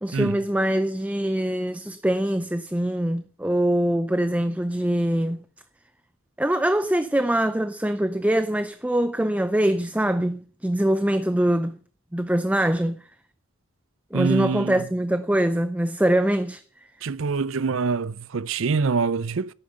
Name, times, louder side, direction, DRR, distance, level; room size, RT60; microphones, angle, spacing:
voice 1, 0.0-5.4 6.4-11.8 12.1-13.0 14.1-16.6, right 1 dB, 5° right, 0.5 m, -23 dB
voice 2, 14.1-14.7 17.0-19.5, right 4 dB, 70° right, 0.6 m, -25 dB
11.5 x 8.8 x 7.0 m
head